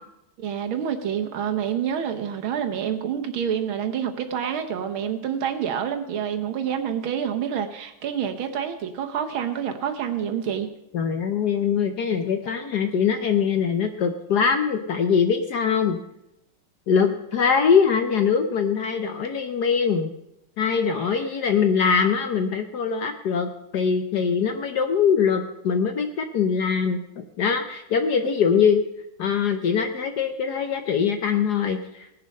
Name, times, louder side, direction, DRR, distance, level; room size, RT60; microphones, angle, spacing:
voice 1, 0.4-10.7 20.9-21.2, right 8 dB, 70° right, 6 dB, 1.8 m, -28 dB
voice 2, 10.9-16.0 16.9-20.1 20.6-28.8 29.2-31.8, left 6 dB, 60° left, 6 dB, 1.2 m, -22 dB
19.0 x 6.8 x 5.4 m, 0.82 s
omnidirectional pair, 2.4 m